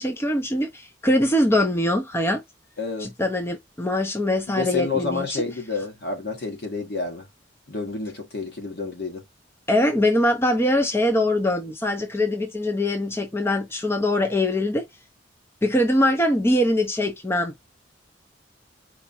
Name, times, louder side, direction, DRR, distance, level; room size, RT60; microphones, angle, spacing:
voice 1, 0.0-2.4 3.0-5.4 9.7-14.8 15.6-17.5, left 1 dB, 15° left, 0.6 m, -22 dB
voice 2, 2.8-3.1 4.5-7.2 7.7-9.2, left 4 dB, 60° left, 1.5 m, -29 dB
4.6 x 2.2 x 4.2 m
head